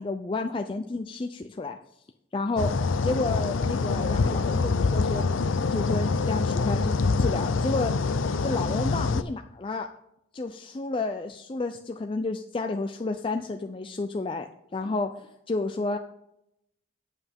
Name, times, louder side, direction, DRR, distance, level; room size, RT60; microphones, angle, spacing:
voice 1, 0.0-1.8 2.3-2.7 3.0-5.3 5.7-8.1 8.4-9.9 10.3-16.0, left 3 dB, 25° left, 6 dB, 0.4 m, -31 dB
sound 1, 2.6-9.2, left 4 dB, 90° left, 0.5 m, -25 dB
9.1 x 7.8 x 3.5 m, 0.80 s
head